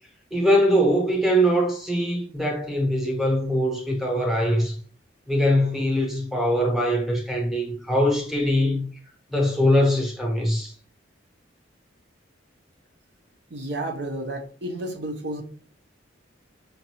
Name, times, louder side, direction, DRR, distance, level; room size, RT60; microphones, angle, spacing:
voice 1, 0.3-4.8 5.3-8.9 9.3-10.7, equal, ahead, 0.8 m, -22 dB
voice 2, 13.5-15.4, right 1 dB, 65° right, 0.7 m, -31 dB
5.2 x 2.6 x 2.8 m
head